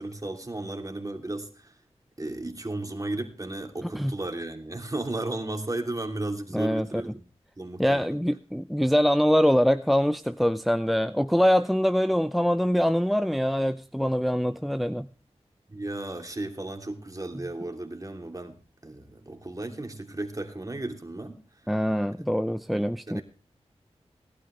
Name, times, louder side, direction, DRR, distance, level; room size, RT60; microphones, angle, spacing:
voice 1, 0.0-1.8 2.2-7.2 7.6-8.2 15.7-18.6 18.8-21.4 23.1-23.2, right 2 dB, 30° right, 5 dB, 2.9 m, -34 dB
voice 2, 6.5-6.9 7.8-15.1 21.7-23.2, equal, ahead, 12 dB, 0.5 m, -24 dB
18.0 x 11.5 x 3.2 m, 0.38 s
cardioid pair, 45°, 12 cm